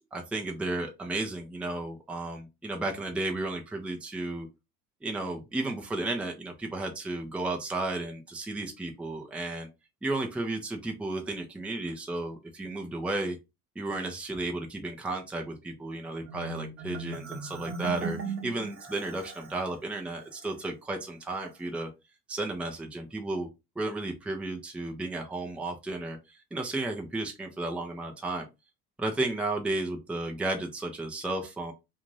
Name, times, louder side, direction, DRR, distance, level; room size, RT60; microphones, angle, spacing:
voice 1, 0.1-4.5 5.0-9.7 10.0-13.4 13.8-21.9 22.3-23.5 23.8-28.5 29.0-31.7, right 2 dB, 5° right, 2 dB, 0.5 m, -33 dB
Marimba xylophone, 16.3-19.6, right 4 dB, 30° right, 0.9 m, -38 dB
2.6 x 2.5 x 3.1 m, 0.24 s
hypercardioid pair, 70°, 44 cm